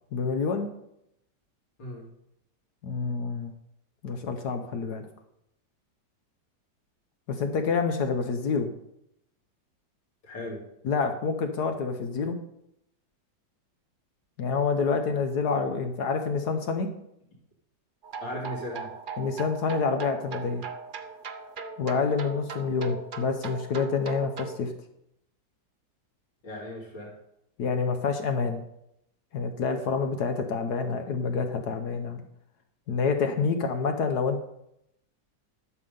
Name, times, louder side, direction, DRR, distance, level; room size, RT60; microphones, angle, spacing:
voice 1, 0.1-0.7 2.8-3.5 4.0-5.1 7.3-8.7 10.8-12.4 14.4-16.9 19.2-20.6 21.8-24.7 27.6-28.6 29.3-32.2 32.9-34.4, left 5 dB, 65° left, 6 dB, 1.4 m, -27 dB
voice 2, 10.2-10.6 18.2-18.9 26.4-27.1, left 1 dB, 85° left, -4 dB, 3.4 m, -37 dB
sound 1, 18.0-24.6, right 5 dB, 85° right, 0.4 m, -39 dB
11.5 x 7.2 x 5.4 m, 0.79 s
omnidirectional pair, 1.9 m